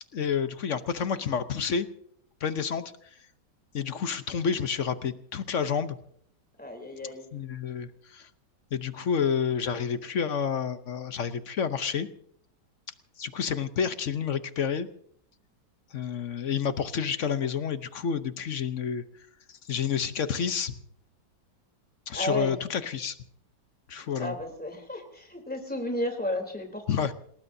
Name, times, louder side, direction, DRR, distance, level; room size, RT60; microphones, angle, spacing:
voice 1, 0.1-1.9 2.4-2.8 3.7-6.0 7.3-8.3 8.7-12.1 13.2-14.9 15.9-19.0 19.5-20.7 22.1-23.2 23.9-24.4 26.9-27.1, left 7 dB, 55° left, 11 dB, 1.0 m, -29 dB
voice 2, 6.6-7.3 22.1-22.5 24.2-27.1, left 1 dB, 5° left, 3 dB, 3.3 m, -33 dB
27.5 x 19.5 x 2.7 m, 0.65 s
omnidirectional pair, 1.9 m